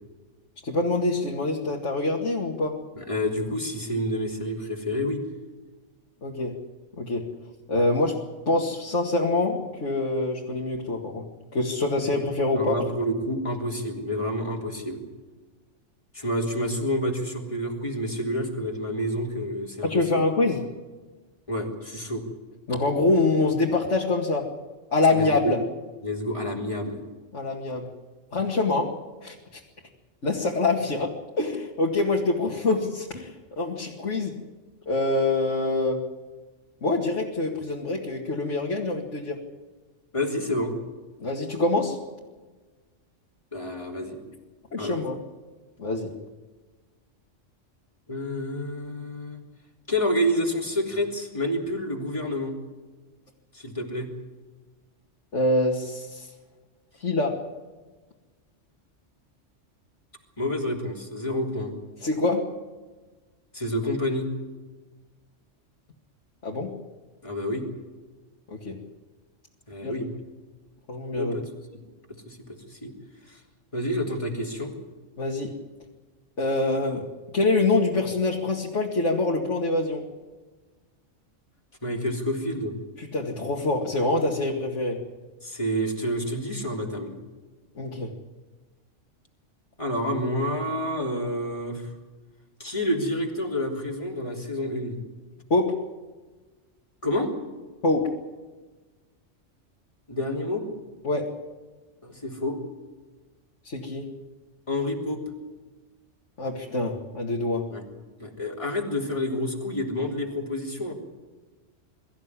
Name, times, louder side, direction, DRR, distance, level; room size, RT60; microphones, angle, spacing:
voice 1, 0.6-2.8 6.2-6.6 7.0-7.3 7.7-12.8 19.8-20.7 22.7-24.5 24.9-25.6 27.3-28.0 28.3-29.0 29.2-29.6 30.2-34.3 34.9-36.0 36.8-39.4 41.2-42.0 44.7-45.2 45.8-46.1 55.3-56.3 57.0-57.4 62.0-62.5 66.4-66.8 68.5-68.8 69.8-69.9 70.9-71.4 75.2-75.5 76.4-77.1 77.3-80.0 83.0-85.0 87.8-88.1 95.5-95.8 97.8-98.1 101.0-101.3 103.6-104.1 106.4-107.7, left 2 dB, 70° left, -2 dB, 2.4 m, -25 dB
voice 2, 3.0-5.2 12.6-15.0 16.1-20.0 21.5-22.2 25.1-25.5 26.0-27.0 40.1-40.7 43.5-44.2 44.8-45.0 48.1-49.4 49.9-52.5 53.5-54.1 60.4-61.7 63.5-64.3 67.2-67.6 69.7-70.1 71.1-71.8 72.3-72.4 72.7-72.9 73.3-73.4 73.7-74.7 81.8-82.8 85.4-87.2 89.8-91.9 92.6-95.0 97.0-97.3 100.1-100.6 102.0-102.6 104.7-105.2 107.7-107.8 108.2-110.9, equal, 25° left, 0 dB, 3.6 m, -28 dB
23.0 x 14.0 x 9.8 m, 1.3 s
omnidirectional pair, 1.3 m